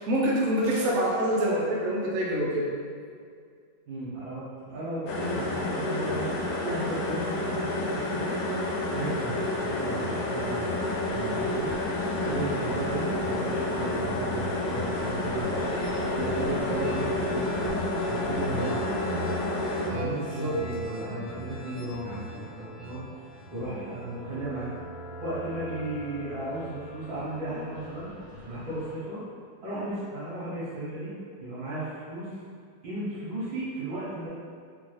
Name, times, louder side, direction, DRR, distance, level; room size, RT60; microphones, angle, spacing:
voice 1, 0.0-2.7 19.8-20.6, equal, 60° right, -4 dB, 1.0 m, -26 dB
voice 2, 3.9-8.3 8.9-11.8 12.2-15.8 16.2-17.8 18.1-18.8 19.8-23.0 23.5-24.7 25.2-28.1 28.4-29.2 29.6-31.1 31.4-32.4 32.8-34.3, right 1 dB, 80° right, -11 dB, 2.1 m, -35 dB
sound 1, 5.1-19.9, left 1 dB, 70° left, 0.9 m, -29 dB
sound 2, 11.1-28.9, equal, 50° left, 1.2 m, -40 dB
5.1 x 2.4 x 3.2 m, 2.1 s
omnidirectional pair, 2.1 m